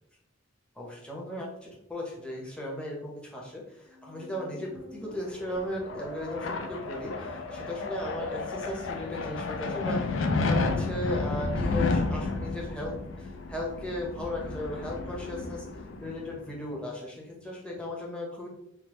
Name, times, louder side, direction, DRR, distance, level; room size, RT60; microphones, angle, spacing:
voice 1, 0.8-18.5, left 1 dB, 5° left, -3 dB, 0.7 m, -36 dB
Musical instrument, 3.8-11.9, left 2 dB, 85° right, 0.7 m, -46 dB
sound 1, 5.2-16.5, left 3 dB, 65° left, 0.4 m, -32 dB
3.4 x 2.0 x 3.0 m, 0.79 s
head